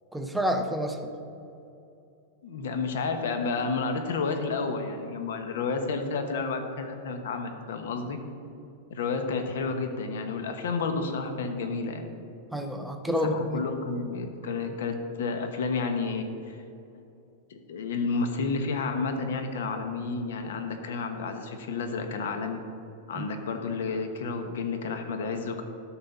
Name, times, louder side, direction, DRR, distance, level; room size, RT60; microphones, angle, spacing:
voice 1, 0.1-1.1 12.5-13.7 23.2-23.3, equal, ahead, 5 dB, 0.5 m, -29 dB
voice 2, 2.4-8.2 8.9-12.0 13.2-16.6 17.5-22.6 23.1-25.6, left 4 dB, 65° left, 6 dB, 1.1 m, -31 dB
11.5 x 4.1 x 7.1 m, 2.7 s
supercardioid pair, 180°, 0 cm